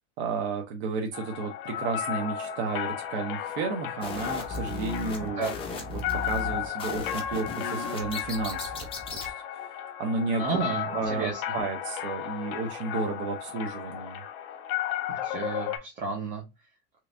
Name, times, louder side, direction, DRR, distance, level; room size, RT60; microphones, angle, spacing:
voice 1, 0.2-5.4 5.9-8.9 9.2-9.7 10.0-10.4 10.9-14.2, right 4 dB, 75° right, 2 dB, 0.8 m, -32 dB
sound 1, 1.1-15.8, left 10 dB, 60° left, 0.7 m, -34 dB
sound 2, 4.0-9.3, left 3 dB, 15° left, 0.6 m, -37 dB
voice 2, 5.2-5.6 10.4-11.4 15.1-16.4, right 5 dB, 25° right, -1 dB, 0.8 m, -32 dB
3.3 x 3.1 x 2.5 m, 0.24 s
supercardioid pair, 160°, 33 cm